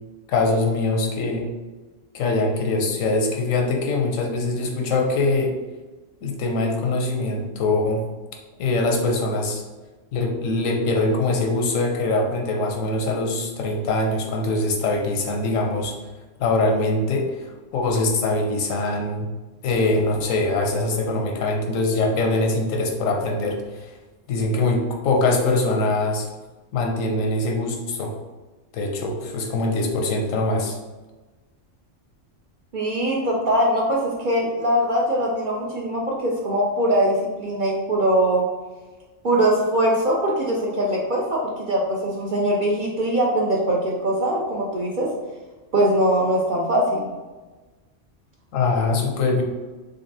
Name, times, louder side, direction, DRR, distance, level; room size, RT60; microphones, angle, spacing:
voice 1, 0.3-1.5 2.1-5.5 6.2-8.1 8.6-9.6 10.1-16.0 16.4-19.3 19.6-23.9 24.3-26.3 26.7-28.1 28.7-30.8 48.5-49.4, left 2 dB, 90° left, 2 dB, 1.1 m, -23 dB
voice 2, 32.7-38.5 39.2-41.4 41.7-45.1 45.7-47.1, right 1 dB, 55° right, -3 dB, 0.5 m, -22 dB
3.9 x 3.3 x 2.6 m, 1.2 s
omnidirectional pair, 1.3 m